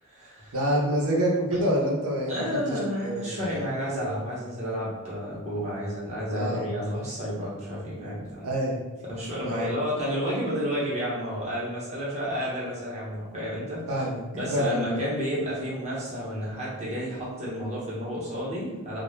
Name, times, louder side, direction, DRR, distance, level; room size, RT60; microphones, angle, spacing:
voice 1, 0.0-0.6 1.5-1.7 2.3-8.5 9.1-14.0 14.3-19.0, equal, 30° right, -7 dB, 0.8 m, -31 dB
voice 2, 0.5-2.4 3.0-3.4 6.3-6.7 8.4-8.8 9.4-9.7 13.9-15.0, right 1 dB, 85° right, -2 dB, 0.6 m, -27 dB
2.1 x 2.1 x 3.1 m, 1.1 s
head